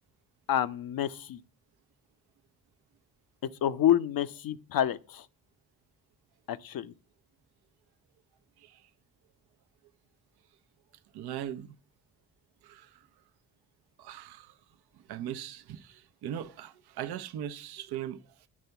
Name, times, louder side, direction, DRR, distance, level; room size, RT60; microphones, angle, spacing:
voice 1, 0.5-1.4 3.4-5.3 6.5-6.9, left 11 dB, 55° left, 0.7 m, -28 dB
voice 2, 8.6-8.9 11.1-11.8 12.6-13.1 14.0-14.6 14.9-18.5, right 10 dB, 65° right, 0.8 m, -40 dB
9.6 x 3.5 x 6.8 m
hypercardioid pair, 40°, 42 cm